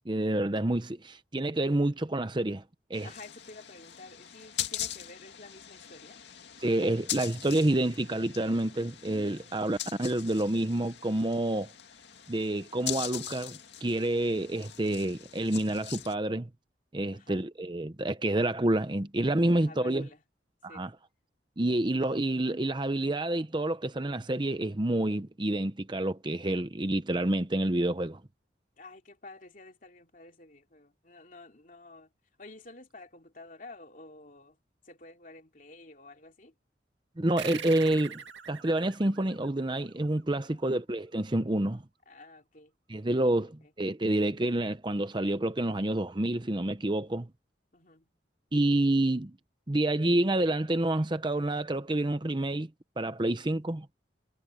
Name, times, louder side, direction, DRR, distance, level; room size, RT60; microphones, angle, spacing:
voice 1, 0.1-2.6 2.9-3.1 6.6-11.7 12.3-16.5 16.9-20.1 20.6-20.9 21.6-28.2 37.2-38.2 38.5-41.8 42.9-47.3 48.5-49.3 49.7-52.7 53.0-53.9, right 1 dB, 25° right, 0.8 m, -28 dB
sound 1, 2.9-16.1, left 11 dB, 70° left, 2.2 m, -41 dB
voice 2, 3.0-6.2 17.1-17.4 19.2-20.2 20.7-20.8 28.8-32.1 32.4-34.6 34.8-36.5 40.4-40.7 42.1-42.7 43.6-43.7 47.7-48.1, left 2 dB, 45° left, 2.9 m, -51 dB
sound 2, 37.4-40.3, right 7 dB, 90° right, 2.3 m, -43 dB
head